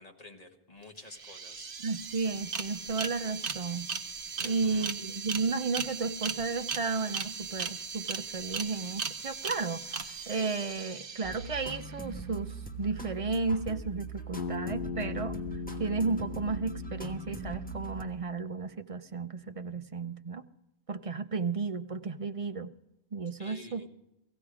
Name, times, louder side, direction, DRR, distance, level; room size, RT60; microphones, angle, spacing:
voice 1, 0.0-1.7 4.4-5.0 23.4-23.9, left 2 dB, 40° left, 2 dB, 1.8 m, -50 dB
sound 1, 0.8-0.9 1.1-11.9, right 5 dB, 60° right, 1.2 m, -38 dB
voice 2, 1.8-3.9 4.4-15.4 15.8-20.4 20.9-22.7 23.1-23.9, right 4 dB, 40° right, 9 dB, 0.6 m, -33 dB
sound 2, 11.2-18.0, right 3 dB, 10° left, 1.2 m, -41 dB
Bass guitar, 14.4-18.7, left 5 dB, 70° left, 1.1 m, -39 dB
17.5 x 15.5 x 4.9 m, 0.87 s
omnidirectional pair, 1.0 m